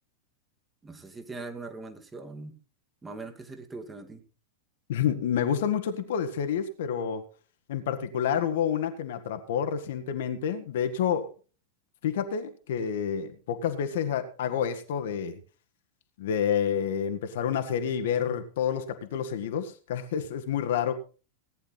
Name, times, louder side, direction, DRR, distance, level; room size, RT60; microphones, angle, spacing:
voice 1, 0.8-2.6 3.0-4.2, right 3 dB, 15° right, 6 dB, 2.1 m, -41 dB
voice 2, 4.9-7.2 7.7-11.3 12.0-15.4 16.2-20.9, left 8 dB, 55° left, 8 dB, 1.6 m, -29 dB
18.0 x 10.0 x 4.0 m, 0.35 s
figure-of-eight pair, 90°, 0 cm